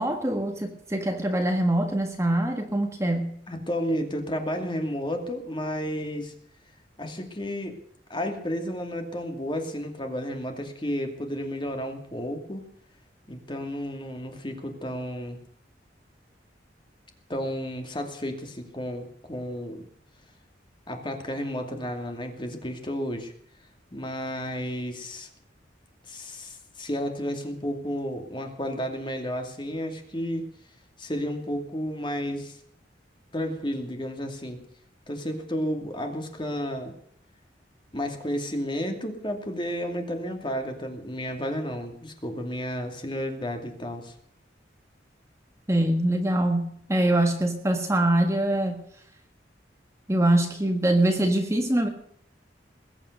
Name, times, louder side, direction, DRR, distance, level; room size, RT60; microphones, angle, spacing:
voice 1, 0.0-3.4 45.7-48.8 50.1-51.9, right 1 dB, 15° right, 4 dB, 1.6 m, -24 dB
voice 2, 3.5-6.3 7.0-7.8 8.1-12.6 13.3-15.4 17.3-19.8 20.9-23.3 23.9-25.3 26.1-30.5 31.0-32.6 33.3-34.6 35.1-36.9 37.9-44.1, equal, 25° left, 4 dB, 2.5 m, -32 dB
20.5 x 9.1 x 6.6 m, 0.66 s
head